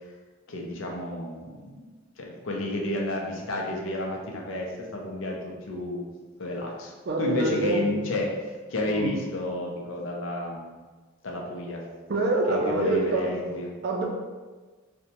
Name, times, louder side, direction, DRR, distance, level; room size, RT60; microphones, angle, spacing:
voice 1, 0.5-1.9 2.2-6.1 6.4-6.9 7.2-8.3 8.7-10.8 11.2-11.8 12.5-13.7, left 1 dB, 65° left, -1 dB, 0.5 m, -31 dB
voice 2, 7.1-8.2 8.9-9.2 12.1-13.4 13.8-14.1, right 2 dB, 50° right, 1 dB, 0.4 m, -26 dB
2.7 x 2.1 x 2.8 m, 1.3 s
head